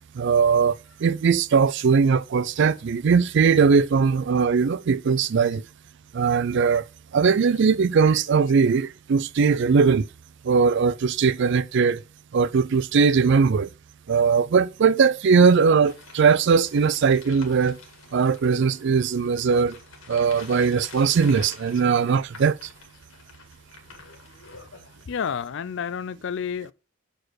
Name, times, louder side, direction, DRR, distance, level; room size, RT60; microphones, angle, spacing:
voice 1, 0.1-5.7 6.1-6.9 7.1-10.1 10.4-12.0 12.3-13.7 14.1-17.8 18.1-19.8 20.1-22.7, right 5 dB, 60° right, 0.4 m, -20 dB
sound 1, 15.8-25.4, left 4 dB, 85° left, 2.0 m, -48 dB
voice 2, 25.1-26.7, left 7 dB, 60° left, 0.4 m, -30 dB
6.2 x 5.0 x 6.2 m
head